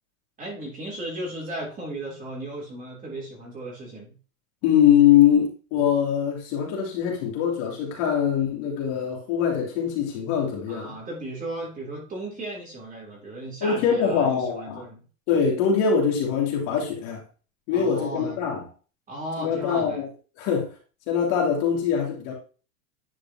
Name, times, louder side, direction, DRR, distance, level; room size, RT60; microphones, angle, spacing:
voice 1, 0.4-4.2 10.7-15.0 17.7-18.4 19.1-20.0, right 1 dB, 20° right, 3.4 m, -35 dB
voice 2, 4.6-10.9 13.6-14.8 15.3-17.2 17.7-18.6 19.4-20.1 20.4-20.7 21.1-22.3, left 8 dB, 50° left, 3.1 m, -22 dB
10.5 x 5.1 x 2.9 m
supercardioid pair, 140°, 43 cm